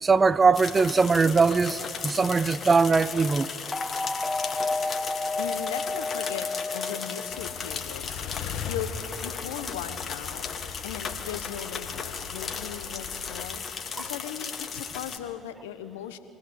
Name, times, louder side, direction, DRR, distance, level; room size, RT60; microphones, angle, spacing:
voice 1, 0.0-3.5, right 4 dB, 30° right, 0.8 m, -21 dB
sound 1, 0.5-15.2, left 6 dB, 45° left, 2.5 m, -36 dB
sound 2, 3.7-7.9, left 3 dB, 15° left, 0.5 m, -31 dB
voice 2, 5.4-8.2 8.7-10.5 10.8-13.6 13.9-16.2, left 10 dB, 85° left, 1.3 m, -38 dB
sound 3, 7.3-13.4, left 6 dB, 65° left, 1.7 m, -40 dB
25.0 x 18.0 x 8.2 m
hypercardioid pair, 60°, 0 cm